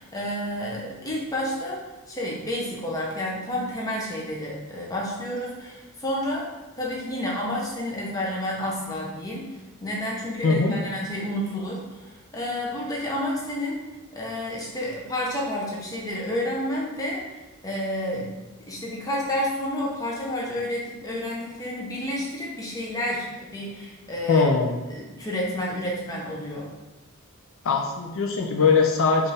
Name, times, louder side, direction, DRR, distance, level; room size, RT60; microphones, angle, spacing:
voice 1, 0.0-1.8 2.1-6.5 6.8-9.5 9.8-13.8 14.1-17.2 17.6-18.4 18.7-24.4 24.9-26.7, left 1 dB, 15° left, -4 dB, 0.7 m, -30 dB
voice 2, 10.4-10.8 24.3-24.8 27.6-29.3, left 4 dB, 65° left, 1 dB, 0.4 m, -21 dB
4.3 x 2.5 x 3.2 m, 1.1 s
head